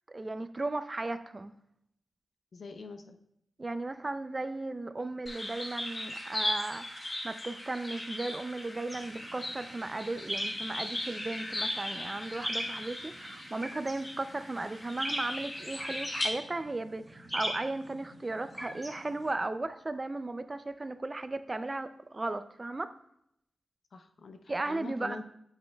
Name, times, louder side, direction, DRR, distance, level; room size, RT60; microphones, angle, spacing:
voice 1, 0.1-1.5 3.6-22.9 24.5-25.2, right 2 dB, 35° right, 11 dB, 0.4 m, -36 dB
voice 2, 2.5-3.2 23.9-25.2, left 3 dB, 70° left, 8 dB, 0.6 m, -44 dB
sound 1, 5.3-16.3, left 1 dB, 35° left, 1.3 m, -38 dB
sound 2, 8.9-19.3, equal, ahead, 1.4 m, -41 dB
8.1 x 5.2 x 2.3 m, 0.74 s
cardioid pair, 60°, 0 cm